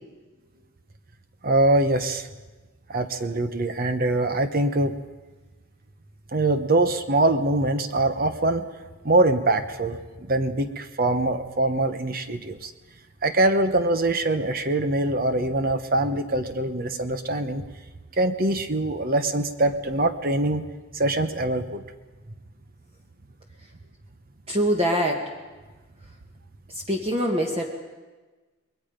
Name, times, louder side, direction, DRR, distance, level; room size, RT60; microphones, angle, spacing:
voice 1, 1.4-2.3 2.9-5.0 6.3-8.7 9.0-10.0 10.3-12.7 13.2-17.6 18.2-20.6 20.9-21.8, right 2 dB, 40° right, 9 dB, 1.0 m, -23 dB
voice 2, 24.5-25.2 26.9-27.6, equal, 25° right, 1 dB, 1.8 m, -23 dB
28.5 x 21.5 x 5.3 m, 1.3 s
head